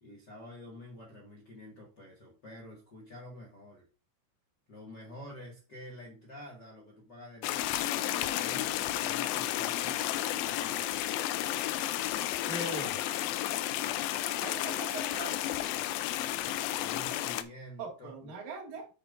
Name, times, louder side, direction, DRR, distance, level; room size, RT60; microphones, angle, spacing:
voice 1, 0.0-3.9 4.7-7.8 8.3-12.4 16.1-18.3, left 1 dB, 40° left, -2 dB, 1.7 m, -49 dB
sound 1, 7.4-17.4, left 13 dB, 85° left, 2.2 m, -32 dB
voice 2, 12.5-13.0 14.4-15.4 17.8-18.9, right 3 dB, 50° right, 1 dB, 3.1 m, -40 dB
8.7 x 8.0 x 2.6 m, 0.33 s
omnidirectional pair, 4.8 m